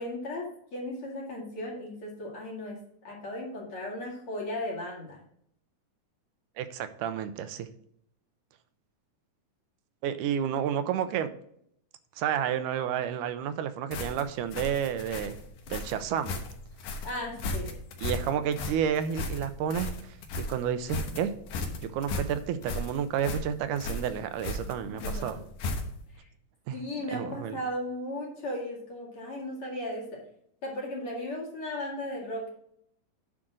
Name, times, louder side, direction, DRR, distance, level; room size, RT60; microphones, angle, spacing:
voice 1, 0.0-2.8 3.0-5.2 17.0-17.7 25.0-25.2 26.7-30.2 30.6-32.5, left 1 dB, 45° left, -2 dB, 2.7 m, -36 dB
voice 2, 6.6-7.7 10.0-11.3 12.2-15.4 15.7-16.4 18.0-21.3 21.8-25.4 26.7-26.8 27.1-27.6, right 9 dB, 85° right, 11 dB, 2.2 m, -31 dB
sound 1, 13.9-26.1, left 2 dB, 80° left, 2.6 m, -36 dB
9.9 x 3.8 x 6.1 m, 0.69 s
omnidirectional pair, 3.6 m